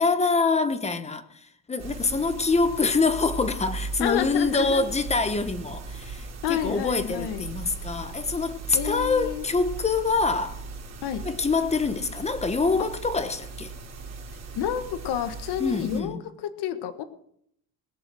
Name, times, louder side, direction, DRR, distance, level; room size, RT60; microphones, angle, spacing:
voice 1, 0.0-1.4 1.7-10.6 11.2-13.7 15.6-16.2, left 4 dB, 15° left, 1.2 m, -25 dB
sound 1, 1.8-16.0, right 4 dB, 40° right, 3.3 m, -38 dB
voice 2, 4.0-4.8 6.4-7.5 8.7-9.5 11.0-11.2 14.5-16.2 16.6-17.0, left 10 dB, 65° left, 1.6 m, -29 dB
21.5 x 7.2 x 6.2 m
cardioid pair, 150°, 43 cm